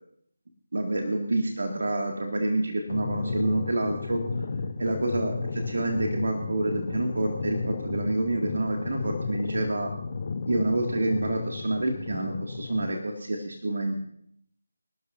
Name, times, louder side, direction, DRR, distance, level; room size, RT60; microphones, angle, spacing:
voice 1, 0.7-4.2 4.8-9.9 10.5-14.0, right 2 dB, 55° right, 2 dB, 2.2 m, -28 dB
sound 1, 2.9-12.9, left 4 dB, 40° left, 1.2 m, -33 dB
26.0 x 12.0 x 2.7 m, 0.68 s
figure-of-eight pair, 155°, 0 cm